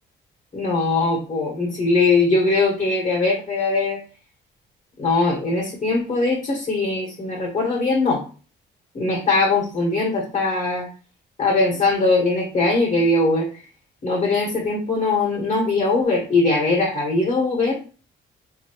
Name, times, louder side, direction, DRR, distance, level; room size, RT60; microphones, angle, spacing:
voice 1, 0.5-4.0 5.0-8.2 8.9-10.9 11.4-13.5 14.0-17.8, left 3 dB, 40° left, -2 dB, 1.6 m, -21 dB
3.9 x 3.0 x 3.0 m, 0.38 s
cardioid pair, 90°, 20 cm